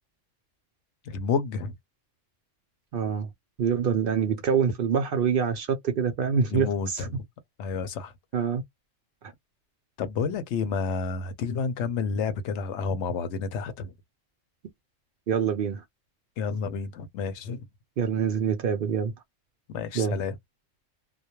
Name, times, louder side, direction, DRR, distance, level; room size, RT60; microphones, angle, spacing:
voice 1, 1.1-1.7 6.5-7.2 7.6-8.1 10.0-13.9 16.4-17.6 19.7-20.4, left 5 dB, 70° left, 0.8 m, -30 dB
voice 2, 2.9-3.3 3.6-7.1 8.3-8.6 15.3-15.8 18.0-19.1 19.9-20.2, right 7 dB, 60° right, 0.6 m, -25 dB
2.2 x 2.1 x 2.9 m
omnidirectional pair, 1.3 m